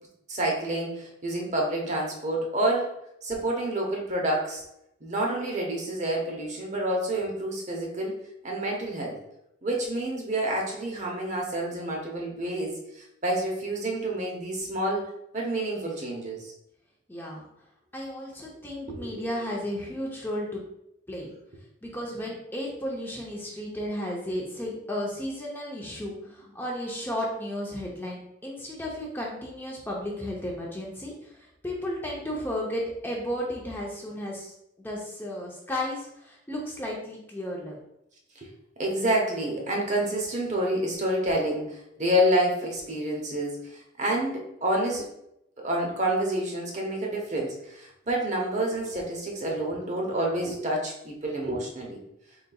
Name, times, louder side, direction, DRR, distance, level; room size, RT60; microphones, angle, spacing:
voice 1, 0.3-2.9 3.2-4.6 5.0-8.1 8.4-9.2 9.6-16.4 18.9-19.0 38.4-38.5 38.8-45.1 45.6-52.0, right 1 dB, 35° right, -1 dB, 0.8 m, -28 dB
voice 2, 17.1-17.5 17.9-20.6 21.1-21.3 21.8-37.8, left 1 dB, 10° left, -3 dB, 0.6 m, -34 dB
4.0 x 3.8 x 2.3 m, 0.80 s
head